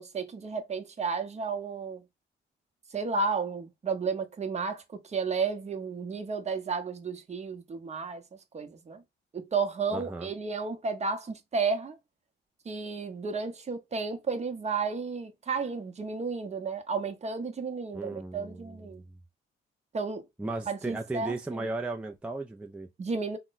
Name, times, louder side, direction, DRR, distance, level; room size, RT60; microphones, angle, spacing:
voice 1, 0.0-2.0 2.9-8.2 8.5-9.0 9.3-12.0 12.6-19.0 19.9-20.3 20.7-21.7 23.0-23.4, right 4 dB, 35° right, 0.8 m, -32 dB
voice 2, 9.9-10.3 17.9-19.1 20.4-22.9, right 2 dB, 5° right, 0.4 m, -36 dB
3.0 x 2.1 x 3.9 m
cardioid pair, 90°, 20 cm